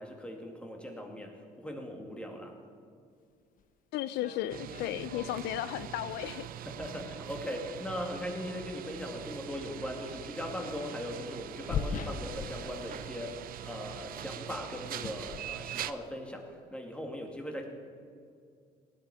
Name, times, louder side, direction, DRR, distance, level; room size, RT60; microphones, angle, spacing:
voice 1, 0.0-2.6 6.7-17.7, left 1 dB, 5° left, 1 dB, 2.4 m, -39 dB
sound 1, 3.6-3.7 4.1-6.1 7.2-7.3 9.1-9.3 9.7-9.8 11.3-13.2 13.4-13.7 14.1-16.1, left 6 dB, 55° left, 0.9 m, -41 dB
voice 2, 3.9-6.5, left 13 dB, 85° left, 15 dB, 0.5 m, -34 dB
sound 2, 4.5-15.9, right 11 dB, 60° right, 0.6 m, -43 dB
18.0 x 12.0 x 5.0 m, 2.3 s
cardioid pair, 110°, 17 cm